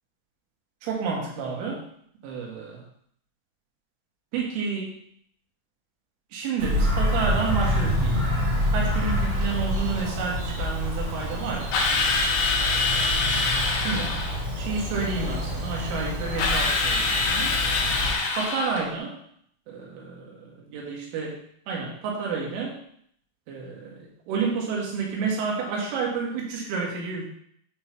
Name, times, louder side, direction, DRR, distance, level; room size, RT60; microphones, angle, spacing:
voice 1, 0.8-1.8 2.2-2.9 4.3-5.0 6.3-8.2 8.7-11.8 13.8-14.2 14.6-17.6 18.3-19.2 19.7-21.4 21.7-22.8 23.5-27.2, right 4 dB, 80° right, -2 dB, 4.0 m, -30 dB
Bird vocalization bird call bird song, 6.6-18.1, equal, 55° right, 1.9 m, -27 dB
Drill, 11.7-14.4 16.4-18.9, left 3 dB, 70° left, 3.3 m, -25 dB
8.7 x 3.2 x 5.9 m, 0.67 s
omnidirectional pair, 5.7 m